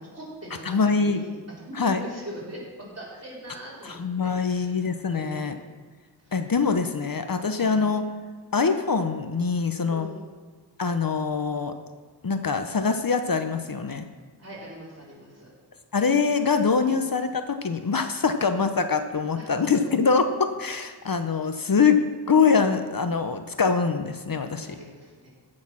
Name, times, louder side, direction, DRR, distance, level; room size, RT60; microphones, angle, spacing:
voice 1, 0.0-1.4 1.7-5.6 6.2-6.3 7.6-7.8 9.9-10.2 14.4-15.5 16.8-17.0 18.3-18.4 19.3-19.5 24.5-25.3, equal, 35° right, -6 dB, 4.4 m, -41 dB
voice 2, 0.7-1.2 1.8-2.0 3.9-5.6 6.3-8.0 8.5-10.1 10.8-11.7 12.2-14.1 15.9-22.0 22.3-24.8, left 5 dB, 55° left, 8 dB, 0.8 m, -24 dB
15.0 x 6.4 x 6.2 m, 1.5 s
wide cardioid pair, 65°, 41 cm